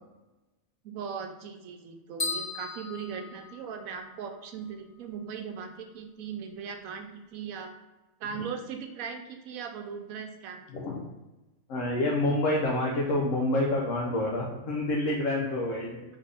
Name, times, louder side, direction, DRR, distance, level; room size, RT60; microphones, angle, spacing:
voice 1, 0.8-7.7 8.2-10.6, right 6 dB, 80° right, 5 dB, 1.1 m, -39 dB
sound 1, 2.2-4.1, left 3 dB, 35° left, 0.7 m, -36 dB
voice 2, 10.7-11.0 11.7-16.0, left 1 dB, 70° left, -3 dB, 1.1 m, -28 dB
3.8 x 3.6 x 3.3 m, 1.1 s
omnidirectional pair, 1.5 m